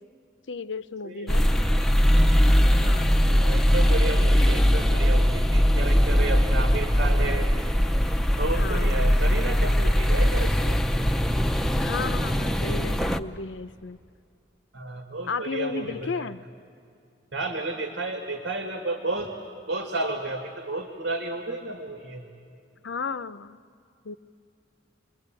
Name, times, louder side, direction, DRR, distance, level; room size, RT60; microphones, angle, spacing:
voice 1, 0.5-1.6 2.7-3.2 4.0-4.3 8.5-9.1 11.8-14.0 15.3-16.4 22.8-23.6 24.0-24.2, left 4 dB, 85° left, 13 dB, 0.7 m, -34 dB
sound 1, 1.3-13.2, equal, ahead, 0.6 m, -21 dB
voice 2, 3.3-7.5 8.4-10.8 14.7-16.3 17.3-19.3 19.7-22.2, right 2 dB, 85° right, 4 dB, 2.1 m, -32 dB
29.0 x 22.0 x 9.0 m, 2.5 s
head